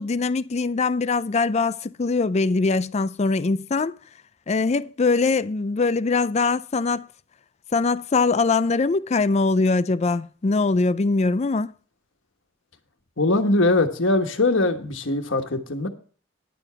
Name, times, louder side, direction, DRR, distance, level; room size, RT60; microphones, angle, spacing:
voice 1, 0.0-3.9 4.5-7.1 7.7-11.7, left 3 dB, 35° left, 0.4 m, -22 dB
voice 2, 13.2-15.9, left 2 dB, 85° left, 1.3 m, -21 dB
10.5 x 7.1 x 5.7 m
head